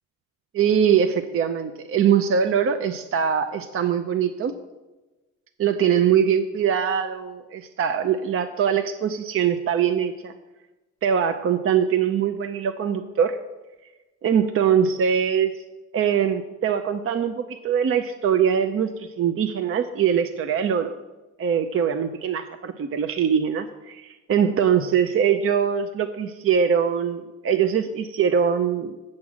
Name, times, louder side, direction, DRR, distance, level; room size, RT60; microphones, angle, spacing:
voice 1, 0.5-4.5 5.6-10.3 11.0-13.4 14.2-15.6 15.9-20.9 21.4-29.0, right 8 dB, 45° right, 9 dB, 0.6 m, -22 dB
7.7 x 7.5 x 6.1 m, 1.1 s
cardioid pair, 90°, 30 cm